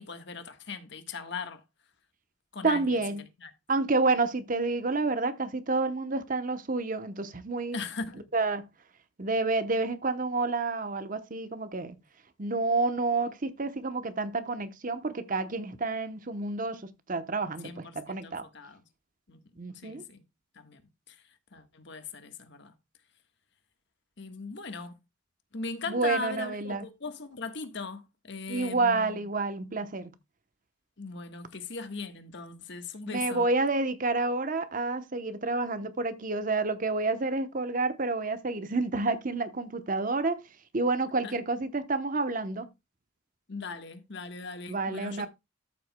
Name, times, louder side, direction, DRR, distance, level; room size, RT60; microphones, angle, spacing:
voice 1, 0.0-1.6 2.5-3.5 7.7-8.3 17.6-18.8 19.3-19.4 19.7-20.2 20.5-20.8 21.1-21.2 21.5-22.7 24.2-25.0 25.5-29.3 31.0-33.5 41.2-41.4 43.5-45.3, left 4 dB, 60° left, 1.4 m, -39 dB
voice 2, 2.6-3.2 3.7-7.8 8.3-8.7 9.2-12.0 12.4-18.5 19.6-20.0 25.9-26.8 28.5-30.1 33.1-40.4 40.7-42.7 44.7-45.3, right 3 dB, 40° right, 0.9 m, -29 dB
13.5 x 7.6 x 2.2 m
head